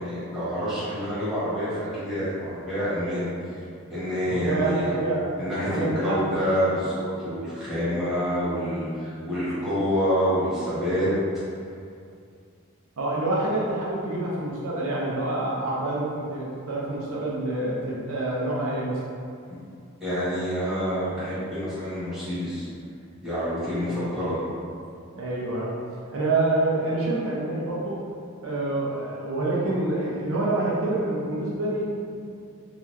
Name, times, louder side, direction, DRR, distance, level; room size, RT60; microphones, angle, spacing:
voice 1, 0.0-3.3 3.9-4.9 5.4-11.1 20.0-22.7 23.2-24.4, equal, ahead, -14 dB, 1.2 m, -27 dB
voice 2, 4.3-5.3 5.7-6.4 13.0-19.0 23.9-24.0 25.1-25.8 26.1-28.0 28.4-32.2, right 2 dB, 70° right, -5 dB, 0.5 m, -27 dB
3.0 x 2.3 x 3.1 m, 2.4 s
head